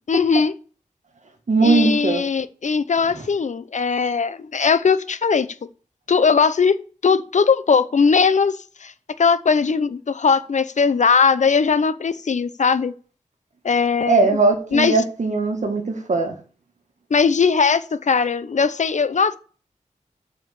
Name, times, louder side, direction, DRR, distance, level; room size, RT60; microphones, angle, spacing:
voice 1, 0.1-0.5 1.6-5.5 6.1-6.8 7.0-8.9 9.2-12.9 13.6-14.3 14.7-14.9 17.1-19.4, left 5 dB, 65° left, 0.8 m, -19 dB
voice 2, 1.5-2.2 3.1-3.3 14.1-16.4, right 3 dB, 65° right, 2.0 m, -19 dB
7.2 x 5.7 x 7.1 m
wide cardioid pair, 95°, 13 cm